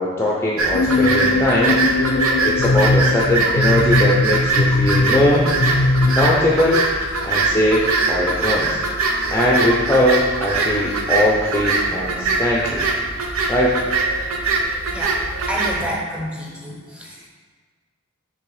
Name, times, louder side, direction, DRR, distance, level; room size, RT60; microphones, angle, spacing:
voice 1, 0.0-1.8 2.4-5.5 6.1-6.8 7.2-8.8 9.3-12.8 13.5-13.8, left 1 dB, 10° left, -4 dB, 0.5 m, -20 dB
sound 1, 0.6-15.8, right 3 dB, 90° right, 0.7 m, -22 dB
sound 2, 0.7-6.4, left 2 dB, 65° left, 0.4 m, -20 dB
voice 2, 15.5-16.7 17.0-17.1, equal, 5° right, -3 dB, 0.9 m, -27 dB
6.5 x 3.4 x 4.8 m, 1.5 s
head